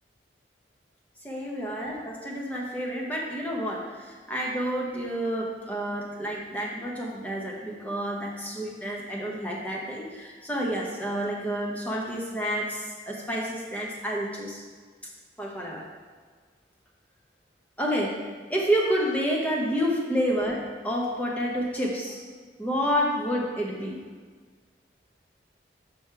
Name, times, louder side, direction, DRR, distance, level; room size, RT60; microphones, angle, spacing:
voice 1, 1.2-14.6 15.4-15.8 17.8-18.2 18.5-20.6 20.8-22.2 22.6-24.0, equal, 10° left, -3 dB, 1.1 m, -29 dB
6.1 x 5.1 x 4.8 m, 1.5 s
head